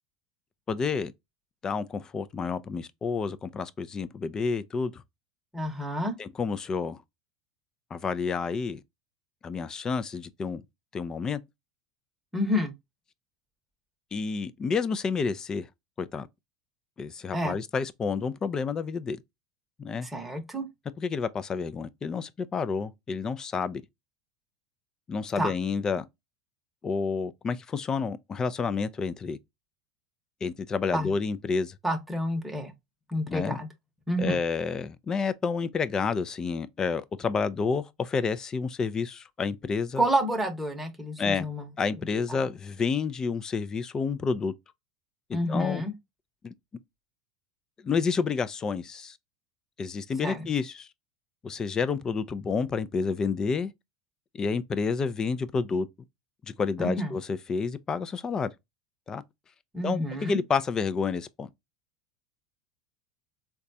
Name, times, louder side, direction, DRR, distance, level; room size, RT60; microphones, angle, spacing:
voice 1, 0.7-1.1 1.6-5.0 6.2-7.0 7.9-8.8 9.4-10.6 10.9-11.4 14.1-15.7 16.0-16.3 17.0-19.2 19.8-20.1 21.0-23.8 25.1-26.1 26.8-29.4 30.4-31.7 33.3-33.6 34.2-40.0 41.2-41.5 41.8-44.5 45.3-45.8 46.4-46.5 47.8-49.2 49.8-50.9 51.4-53.7 54.3-55.9 56.6-58.5 59.1-59.2 59.8-61.5, left 5 dB, 25° left, 0.4 m, -29 dB
voice 2, 5.5-6.1 12.3-12.7 17.3-17.6 20.0-20.7 25.4-25.5 30.9-31.1 31.8-32.7 33.1-33.7 34.1-34.4 40.0-41.7 42.3-42.4 45.3-45.9 50.2-50.5 56.8-57.1 59.7-60.4, equal, 5° right, 0.9 m, -29 dB
3.9 x 2.3 x 2.6 m
supercardioid pair, 100°, 2 cm